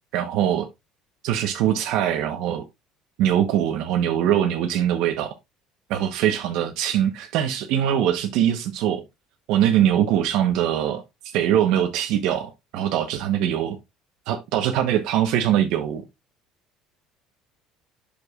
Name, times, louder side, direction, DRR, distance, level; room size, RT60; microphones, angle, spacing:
voice 1, 0.1-0.7 1.2-2.6 3.2-5.3 5.9-9.0 9.5-11.0 11.3-13.8 14.3-16.0, right 10 dB, 70° right, 1.0 m, -22 dB
8.1 x 6.8 x 2.4 m
cardioid pair, 135°, 0 cm